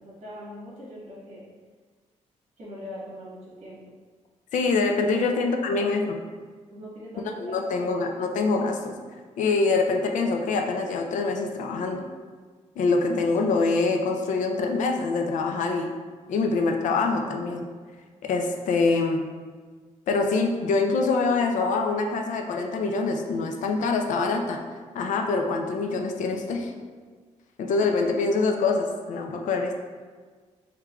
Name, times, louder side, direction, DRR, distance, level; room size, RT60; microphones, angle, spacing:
voice 1, 0.0-1.4 2.6-3.8 5.1-5.9 6.7-8.3, equal, 65° right, -8 dB, 1.4 m, -41 dB
voice 2, 4.5-6.2 7.4-8.9 9.4-12.0 12.8-15.9 16.3-17.7 18.2-19.3 20.1-24.6 24.9-26.7 27.6-29.7, left 3 dB, 85° left, 3 dB, 0.4 m, -25 dB
3.6 x 3.1 x 2.3 m, 1.5 s
wide cardioid pair, 135°, 13 cm